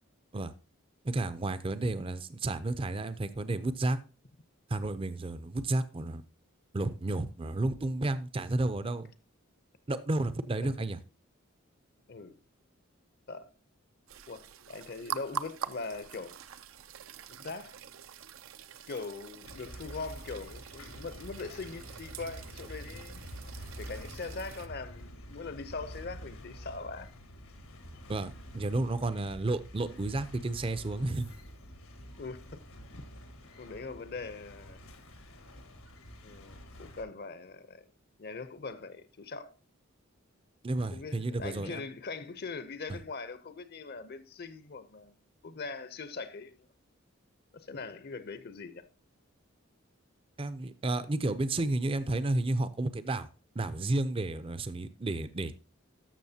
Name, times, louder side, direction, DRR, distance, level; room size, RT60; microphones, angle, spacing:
voice 1, 1.0-4.0 4.7-6.2 6.7-9.1 9.9-11.0 28.1-31.3 40.6-41.8 42.9-43.0 50.4-53.3 53.5-55.5, right 2 dB, 25° right, 0.5 m, -32 dB
sound 1, 14.1-24.7, right 8 dB, 75° right, 0.5 m, -44 dB
voice 2, 14.3-16.3 17.3-17.8 18.9-23.2 23.8-27.1 32.2-32.6 32.9-33.0 33.6-34.8 36.2-37.9 38.2-39.5 40.9-45.1 45.4-46.7 47.5-48.9, left 4 dB, 50° left, 0.7 m, -41 dB
sound 2, 19.4-37.0, equal, 85° left, 1.6 m, -48 dB
13.5 x 6.3 x 2.8 m
head